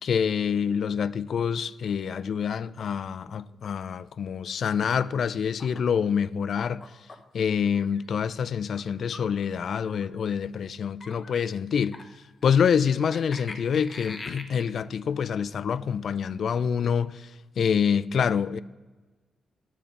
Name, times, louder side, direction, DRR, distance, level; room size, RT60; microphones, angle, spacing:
voice 1, 0.0-6.8 7.3-12.0 12.4-17.3 17.6-18.6, left 7 dB, 55° left, 0.3 m, -26 dB
sound 1, 5.6-5.8 6.6-7.2 7.7-8.0 8.7-9.3 9.9-10.2 11.0-11.5 11.9-12.5 13.1-14.6, left 3 dB, 30° left, 0.9 m, -43 dB
10.0 x 7.1 x 5.3 m
wide cardioid pair, 145°, 0 cm